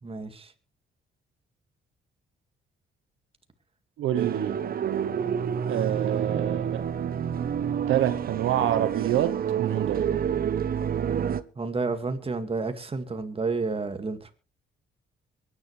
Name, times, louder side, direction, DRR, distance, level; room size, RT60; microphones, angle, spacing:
voice 1, 0.0-0.5 11.6-14.3, right 4 dB, 30° right, 2.1 m, -30 dB
voice 2, 4.0-4.5 5.7-6.8 7.9-10.1, right 12 dB, 85° right, 1.0 m, -27 dB
sound 1, 4.1-11.4, right 8 dB, 50° right, 0.9 m, -28 dB
23.5 x 10.0 x 3.3 m
cardioid pair, 90°, 20 cm